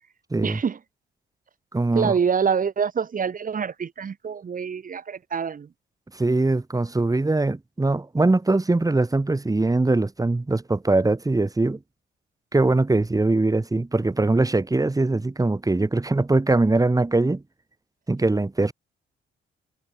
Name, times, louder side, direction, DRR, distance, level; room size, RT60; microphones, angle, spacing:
voice 1, 0.4-0.8 1.9-5.7, right 6 dB, 45° right, 3.4 m, -25 dB
voice 2, 1.7-2.1 6.1-11.8 12.5-17.4 18.1-18.7, right 2 dB, 15° right, 7.8 m, -22 dB
cardioid pair, 90°, 20 cm